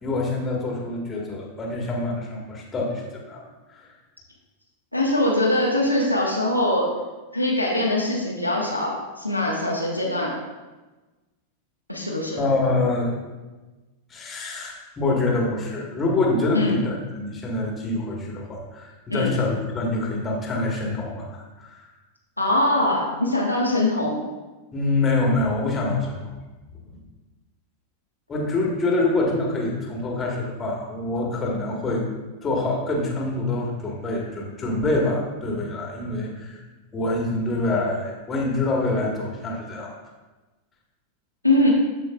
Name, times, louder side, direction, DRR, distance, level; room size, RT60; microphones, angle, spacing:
voice 1, 0.0-3.4 3.7-3.9 12.3-13.2 14.1-21.9 24.7-26.3 28.3-32.0 32.4-36.6 36.9-39.9, left 2 dB, 20° left, -1 dB, 1.6 m, -25 dB
voice 2, 4.9-6.9 7.3-10.3 11.9-12.4 16.5-16.7 19.1-19.3 22.4-24.2 41.4-41.7, left 1 dB, 90° left, -3 dB, 1.2 m, -22 dB
13.0 x 4.5 x 2.4 m, 1.2 s
figure-of-eight pair, 90°, 0 cm